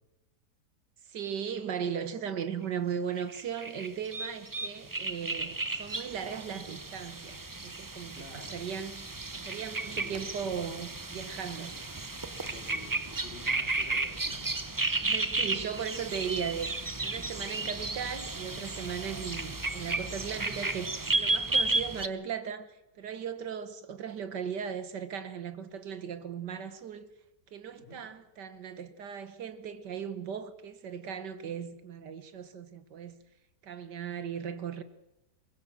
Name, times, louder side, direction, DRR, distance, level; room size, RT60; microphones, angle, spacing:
voice 1, 1.1-11.7 15.0-27.1 27.5-33.2 33.6-34.8, right 7 dB, 75° right, 1.8 m, -37 dB
sound 1, 3.2-22.1, right 3 dB, 25° right, 0.4 m, -33 dB
voice 2, 8.1-8.7 9.9-10.2 12.4-14.5 27.8-28.0, left 2 dB, 30° left, 3.9 m, -50 dB
23.0 x 21.0 x 7.1 m
omnidirectional pair, 1.8 m